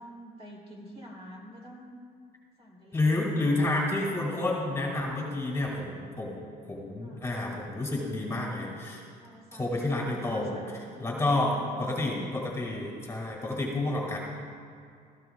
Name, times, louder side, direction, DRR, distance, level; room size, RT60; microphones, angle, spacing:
voice 1, 0.0-2.0 2.6-3.7 7.0-7.3 9.2-12.3, equal, 35° right, -2 dB, 3.3 m, -47 dB
voice 2, 2.9-6.4 6.7-9.0 9.6-10.6 11.0-14.2, left 2 dB, 15° left, -2 dB, 2.2 m, -29 dB
17.0 x 14.0 x 2.4 m, 2.3 s
cardioid pair, 110°, 17 cm